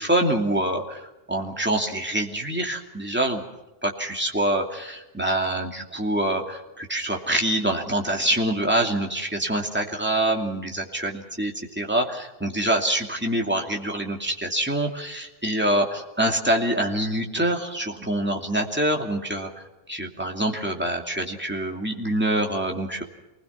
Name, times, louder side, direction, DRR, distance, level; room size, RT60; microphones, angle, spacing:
voice 1, 0.0-3.4 3.8-19.5 19.9-23.0, right 1 dB, 10° right, 1 dB, 2.7 m, -25 dB
27.5 x 21.0 x 6.0 m, 1.0 s
omnidirectional pair, 1.1 m